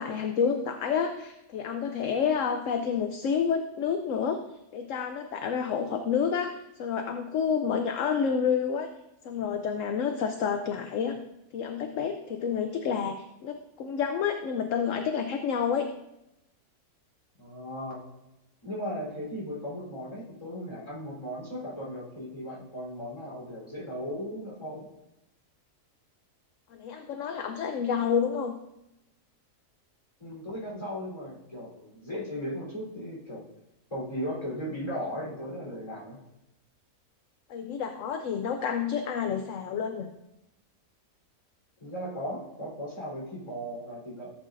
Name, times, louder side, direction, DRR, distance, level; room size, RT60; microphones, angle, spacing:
voice 1, 0.0-4.4 4.7-6.5 6.8-8.9 9.2-11.2 11.5-13.2 13.4-15.9 26.7-28.5 37.5-40.1, left 7 dB, 60° left, 6 dB, 1.0 m, -29 dB
voice 2, 17.4-18.0 18.6-24.8 30.2-33.4 33.9-36.2 41.8-44.3, equal, 20° left, -4 dB, 3.9 m, -37 dB
14.5 x 8.2 x 2.6 m, 0.88 s
omnidirectional pair, 1.6 m